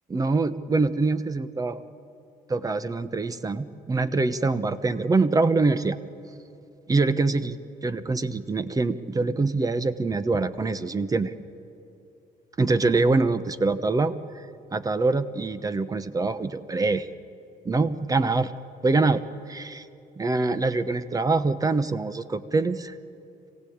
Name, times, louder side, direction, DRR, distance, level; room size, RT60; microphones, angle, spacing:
voice 1, 0.1-1.8 2.5-6.0 6.9-7.6 7.8-11.3 12.6-14.4 14.7-17.1 17.6-18.5 18.8-19.2 19.5-19.8 20.2-22.9, right 3 dB, 20° right, 13 dB, 0.9 m, -24 dB
25.0 x 17.0 x 8.7 m, 2.7 s
cardioid pair, 110°, 17 cm